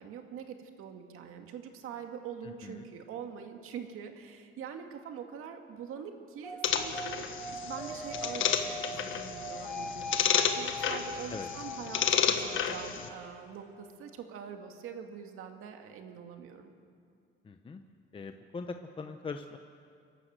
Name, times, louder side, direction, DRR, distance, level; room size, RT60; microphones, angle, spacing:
voice 1, 0.0-16.7, right 7 dB, 90° right, 5 dB, 2.0 m, -44 dB
sound 1, 6.4-13.9, left 1 dB, 5° left, 7.1 m, -42 dB
sound 2, 6.6-13.1, left 8 dB, 70° left, 1.4 m, -31 dB
voice 2, 17.5-17.8 18.1-19.6, left 4 dB, 25° left, 6 dB, 0.8 m, -41 dB
27.5 x 12.0 x 7.9 m, 2.3 s
cardioid pair, 145°, 21 cm